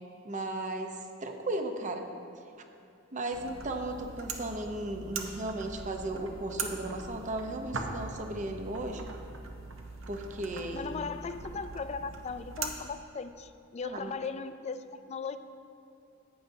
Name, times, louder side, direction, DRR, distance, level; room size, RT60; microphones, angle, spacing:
voice 1, 0.2-2.1 3.1-9.1 10.1-11.0 13.8-14.2, right 2 dB, 35° right, 5 dB, 0.7 m, -36 dB
sound 1, 3.3-12.7, right 4 dB, 65° right, 0.8 m, -41 dB
voice 2, 10.7-15.4, left 5 dB, 30° left, 11 dB, 0.3 m, -38 dB
14.5 x 9.0 x 2.7 m, 2.6 s
head